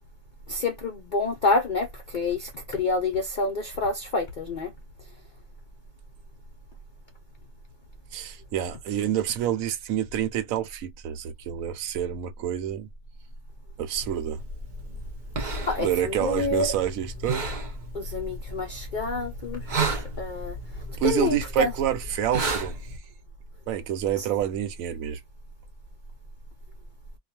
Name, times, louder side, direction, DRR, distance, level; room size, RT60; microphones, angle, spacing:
voice 1, 0.5-4.7 15.6-16.7 17.9-20.6 20.9-21.7 24.2-24.3, left 3 dB, 60° left, 0.5 m, -28 dB
voice 2, 8.1-12.9 13.8-14.4 15.8-17.4 21.0-22.8 23.7-25.2, right 11 dB, 75° right, 0.9 m, -28 dB
sound 1, 13.9-23.0, right 2 dB, 45° right, 0.7 m, -33 dB
2.4 x 2.3 x 2.7 m
omnidirectional pair, 1.5 m